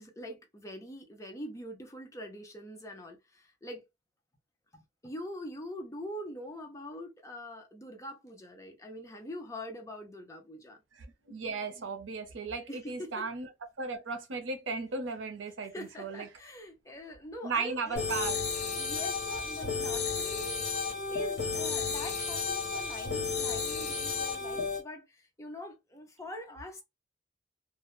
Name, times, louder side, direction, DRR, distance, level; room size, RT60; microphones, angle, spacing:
voice 1, 0.0-3.8 4.7-10.8 12.7-13.1 15.7-18.0 18.7-20.7 21.1-26.8, equal, 15° left, 0.5 m, -43 dB
voice 2, 10.9-16.3 17.4-18.4, right 4 dB, 90° right, 0.6 m, -36 dB
sound 1, 18.0-24.8, left 5 dB, 55° left, 0.9 m, -33 dB
2.2 x 2.0 x 2.9 m
head